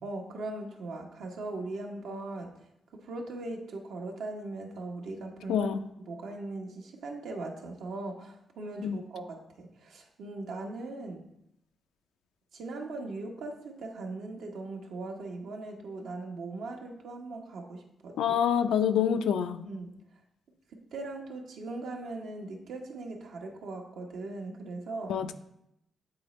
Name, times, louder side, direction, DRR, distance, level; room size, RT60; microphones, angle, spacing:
voice 1, 0.0-2.5 2.9-5.7 6.0-11.3 12.5-18.2 19.6-19.9 20.7-25.2, right 2 dB, 85° right, 2 dB, 0.9 m, -39 dB
voice 2, 5.5-5.8 8.8-9.0 18.2-19.6 25.1-25.3, left 8 dB, 90° left, 9 dB, 0.4 m, -26 dB
8.1 x 4.0 x 3.1 m, 0.80 s
cardioid pair, 65°, 0 cm